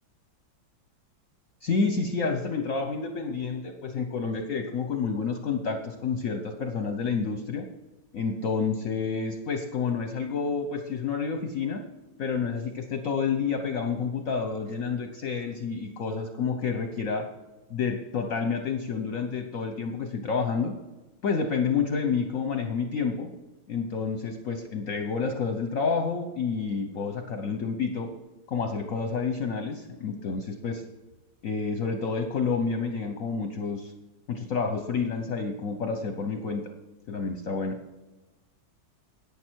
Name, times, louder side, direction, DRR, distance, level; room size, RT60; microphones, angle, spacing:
voice 1, 1.6-7.7 8.1-11.8 12.2-17.3 17.7-20.7 21.2-23.3 23.7-28.1 28.5-30.8 31.4-33.9 34.3-36.7 37.1-37.8, left 5 dB, 55° left, 6 dB, 0.9 m, -29 dB
11.0 x 8.8 x 4.6 m, 1.1 s
omnidirectional pair, 2.3 m